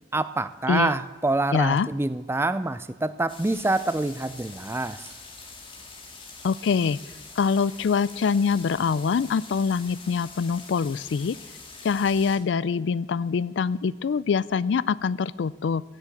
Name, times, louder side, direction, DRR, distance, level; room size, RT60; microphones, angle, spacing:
voice 1, 0.1-5.1, right 2 dB, 15° right, 13 dB, 0.4 m, -26 dB
voice 2, 1.5-1.9 6.4-7.0 7.4-11.4 11.8-15.8, left 5 dB, 85° left, 20 dB, 0.4 m, -24 dB
sound 1, 3.3-12.4, left 3 dB, 30° left, 2.2 m, -44 dB
15.5 x 7.4 x 7.8 m, 1.3 s
head